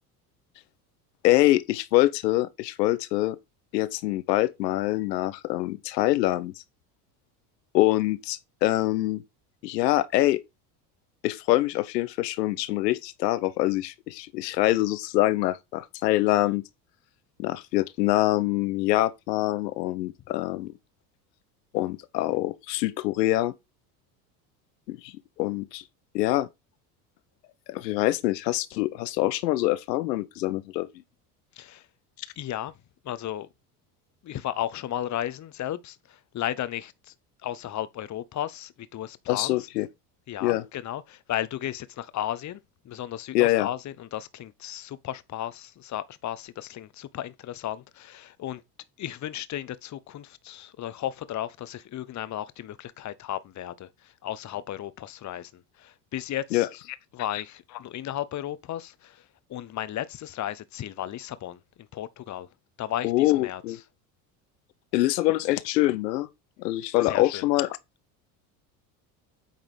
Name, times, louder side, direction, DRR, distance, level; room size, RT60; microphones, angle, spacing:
voice 1, 1.2-3.4 3.7-6.5 7.7-9.2 9.6-10.4 11.2-16.6 17.4-20.7 21.7-23.5 24.9-25.1 25.4-25.8 26.1-26.5 27.7-30.9 39.3-39.9 40.4-40.6 43.3-43.7 56.5-56.7 57.3-57.4 63.0-63.8 64.9-66.3 66.6-67.8, left 17 dB, 85° left, 0.9 m, -25 dB
voice 2, 32.4-32.7 33.0-33.5 34.2-36.0 36.3-37.1 37.4-39.6 40.3-42.6 42.8-48.6 49.0-53.9 54.2-55.5 55.8-56.7 57.1-59.2 59.5-61.6 61.9-62.5 62.8-63.6 67.0-67.4, left 12 dB, 35° left, 0.9 m, -34 dB
9.2 x 3.9 x 4.8 m
hypercardioid pair, 85°, 48 cm